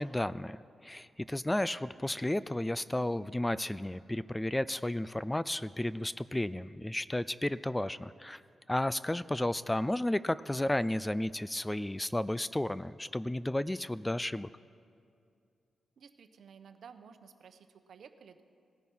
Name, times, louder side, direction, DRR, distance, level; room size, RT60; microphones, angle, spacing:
voice 1, 0.0-8.4 8.7-14.5, left 1 dB, 10° left, 17 dB, 0.3 m, -33 dB
voice 2, 16.0-18.4, right 6 dB, 70° right, 9 dB, 0.9 m, -54 dB
18.0 x 14.0 x 5.5 m, 2.4 s
cardioid pair, 90°, 0 cm